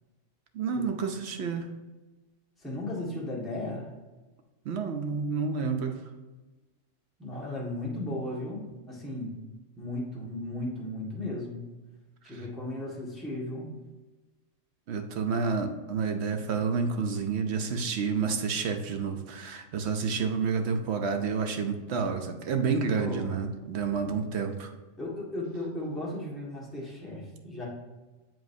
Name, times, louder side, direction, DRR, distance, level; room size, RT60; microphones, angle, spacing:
voice 1, 0.5-1.7 4.7-6.0 14.9-24.7, right 5 dB, 65° right, 6 dB, 0.9 m, -29 dB
voice 2, 2.6-3.9 7.2-9.3 9.8-11.6 12.2-13.7 22.9-23.3 25.0-27.7, left 1 dB, ahead, -6 dB, 1.5 m, -35 dB
7.4 x 5.1 x 2.7 m, 1.2 s
omnidirectional pair, 1.3 m